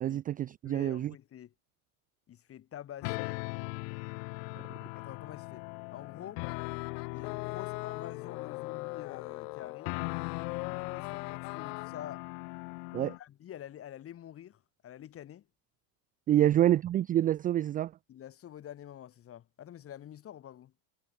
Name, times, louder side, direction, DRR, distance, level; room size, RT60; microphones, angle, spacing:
voice 1, 0.0-1.1 12.9-13.1 16.3-17.9, right 12 dB, 20° right, 0.4 m, -27 dB
voice 2, 0.6-1.5 2.3-3.5 4.9-6.5 7.1-10.0 10.7-12.3 12.9-15.5 16.3-16.5 18.1-20.7, left 11 dB, 30° left, 3.4 m, -47 dB
sound 1, 3.0-13.2, left 40 dB or more, 60° left, 1.1 m, -40 dB
sound 2, 6.4-11.9, left 23 dB, 80° left, 2.1 m, -41 dB
cardioid pair, 155°, 45 cm